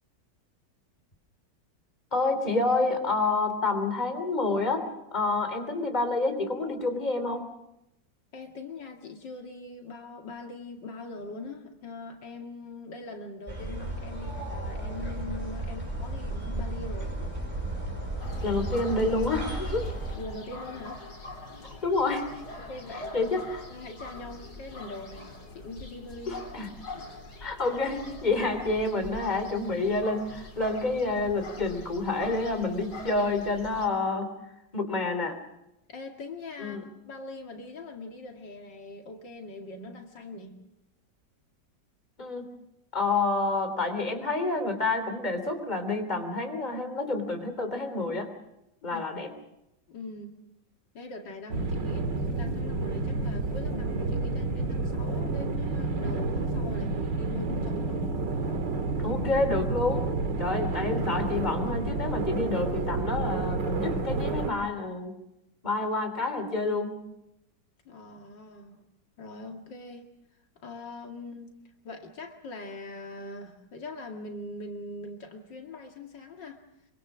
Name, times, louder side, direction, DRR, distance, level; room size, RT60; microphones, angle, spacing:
voice 1, 2.1-7.5 18.4-19.9 21.6-22.3 23.1-23.6 26.3-26.7 27.4-34.3 34.7-35.4 36.6-36.8 42.2-42.5 42.9-48.3 48.8-49.3 59.0-60.1 60.4-65.2 65.6-67.0, left 3 dB, 25° left, 6 dB, 3.4 m, -28 dB
voice 2, 8.3-17.2 20.1-21.0 22.6-23.3 23.7-26.4 26.9-27.1 35.9-40.6 48.9-49.0 49.9-50.4 50.9-58.1 67.8-68.8 69.2-70.1 70.6-71.5 71.8-76.6, left 2 dB, 85° left, 3 dB, 2.9 m, -42 dB
sound 1, 13.5-20.2, right 2 dB, 15° right, 5.6 m, -34 dB
sound 2, 18.2-33.9, left 2 dB, 60° left, 3.9 m, -43 dB
sound 3, 51.5-64.5, right 3 dB, 85° right, 2.5 m, -30 dB
25.5 x 24.5 x 6.2 m, 0.85 s
omnidirectional pair, 1.9 m